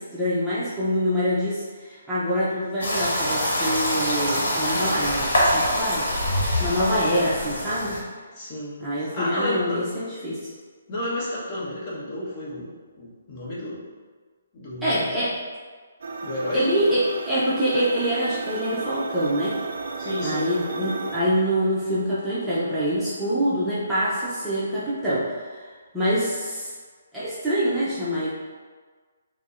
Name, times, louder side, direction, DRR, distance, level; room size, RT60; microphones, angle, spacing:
voice 1, 0.0-6.1 6.6-8.0 8.8-10.5 14.8-15.3 16.5-19.6 20.2-25.7 25.9-26.7 27.1-28.3, equal, ahead, -13 dB, 0.7 m, -25 dB
sound 1, 2.8-8.0, equal, 60° left, 1.2 m, -24 dB
voice 2, 8.3-8.9 9.1-9.8 10.9-13.8 14.5-15.2 16.2-16.7 20.0-20.5, left 1 dB, 35° left, -7 dB, 1.1 m, -31 dB
sound 2, 16.0-21.2, right 4 dB, 60° right, 0.3 m, -33 dB
5.9 x 2.1 x 2.5 m, 1.5 s
figure-of-eight pair, 140°, 0 cm